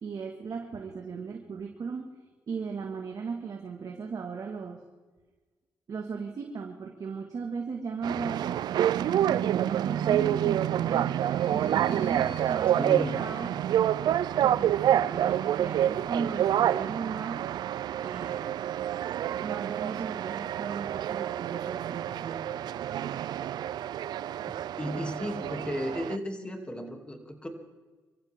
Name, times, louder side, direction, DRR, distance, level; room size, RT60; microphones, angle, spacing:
voice 1, 0.0-2.2 2.5-4.8 5.9-11.1 11.5-13.5 14.4-17.5 18.0-18.5 19.4-22.5, right 5 dB, 55° right, 2 dB, 1.9 m, -37 dB
sound 1, 8.0-26.2, right 11 dB, 80° right, 0.4 m, -28 dB
sound 2, 10.5-14.9, left 7 dB, 80° left, 1.8 m, -52 dB
voice 2, 12.7-13.3 24.8-27.5, equal, 15° left, 3 dB, 2.8 m, -34 dB
25.5 x 14.5 x 3.7 m, 1.3 s
cardioid pair, 75°, 7 cm